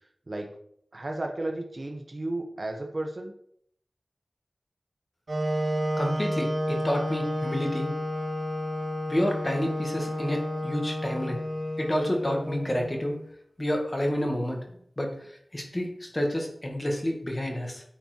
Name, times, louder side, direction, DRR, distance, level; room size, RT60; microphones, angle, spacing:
voice 1, 0.3-0.6 0.9-3.3, right 2 dB, 45° right, 3 dB, 1.1 m, -33 dB
Wind instrument woodwind instrument, 5.3-13.2, equal, 75° right, 2.2 m, -31 dB
voice 2, 6.0-7.9 9.1-11.4 11.8-13.2 13.6-14.6 15.0-15.1 15.5-17.8, equal, 30° left, 1 dB, 1.9 m, -29 dB
9.1 x 4.4 x 4.5 m, 0.67 s
wide cardioid pair, 75°, 0 cm